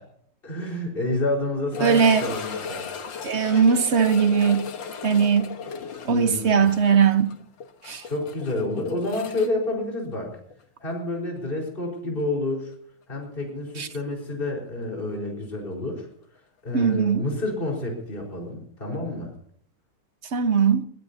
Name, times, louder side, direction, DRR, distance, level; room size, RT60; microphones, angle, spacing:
voice 1, 0.4-2.9 6.1-6.7 8.0-10.3 10.8-12.7 13.1-16.1 16.6-19.3, left 2 dB, 30° left, 5.1 m, -29 dB
sound 1, 1.7-10.6 10.9-11.0 11.6-11.7 14.3-14.4, left 6 dB, 85° left, 2.2 m, -37 dB
voice 2, 1.8-2.2 3.2-4.7 5.0-5.5 6.0-7.3 7.8-8.0 13.8-13.9 16.7-17.3 20.3-20.9, right 6 dB, 45° right, 1.2 m, -20 dB
22.5 x 20.5 x 2.8 m
omnidirectional pair, 2.0 m